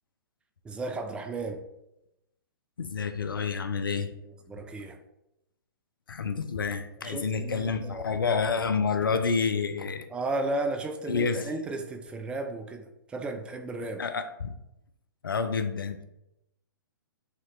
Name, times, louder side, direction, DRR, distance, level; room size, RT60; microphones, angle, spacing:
voice 1, 0.6-1.6 4.5-5.0 7.0-8.3 10.1-14.0, right 2 dB, 10° right, 0.3 m, -34 dB
voice 2, 2.8-4.1 6.1-10.1 11.1-11.5 14.0-14.5 15.2-16.0, left 5 dB, 75° left, 0.4 m, -29 dB
5.9 x 2.8 x 3.1 m
figure-of-eight pair, 120°, 11 cm